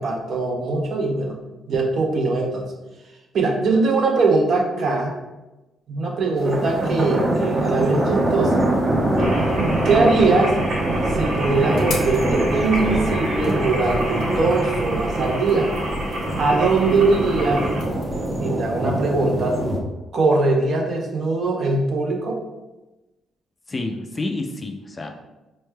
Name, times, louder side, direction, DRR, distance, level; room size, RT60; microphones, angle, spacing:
voice 1, 0.0-1.4 1.7-2.7 3.3-5.1 5.9-8.6 9.8-10.6 11.1-15.7 16.4-17.6 18.4-19.6 20.1-22.4, right 3 dB, 60° right, 0 dB, 0.8 m, -21 dB
sound 1, 6.4-19.8, right 1 dB, 30° right, 0.7 m, -24 dB
sound 2, 9.2-17.8, right 1 dB, 80° right, 1.3 m, -28 dB
sound 3, 11.7-18.4, left 2 dB, 80° left, 0.9 m, -38 dB
voice 2, 23.7-25.1, left 2 dB, 25° left, 4 dB, 0.4 m, -29 dB
4.5 x 3.1 x 2.2 m, 1.1 s
cardioid pair, 90°, 0 cm